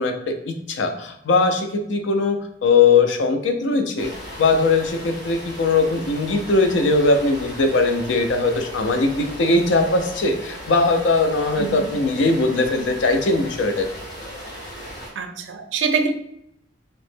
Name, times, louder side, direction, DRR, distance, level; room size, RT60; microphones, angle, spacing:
voice 1, 0.0-4.1 4.4-13.9, left 3 dB, 85° left, 5 dB, 0.5 m, -20 dB
sound 1, 4.0-15.1, equal, 60° left, 1.1 m, -37 dB
voice 2, 15.2-16.1, right 5 dB, 75° right, 5 dB, 0.4 m, -24 dB
2.9 x 2.1 x 3.3 m, 0.75 s
head